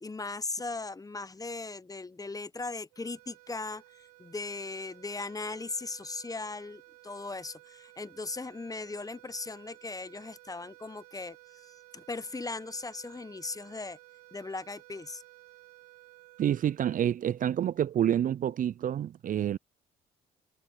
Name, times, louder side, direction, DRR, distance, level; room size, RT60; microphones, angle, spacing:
voice 1, 0.0-11.4 11.6-14.0 14.3-15.2, left 3 dB, 20° left, 1.1 m, -38 dB
sound 1, 2.9-17.5, right 22 dB, 85° right, 3.9 m, -56 dB
voice 2, 16.4-19.6, right 10 dB, 45° right, 0.5 m, -28 dB
hypercardioid pair, 55°, 19 cm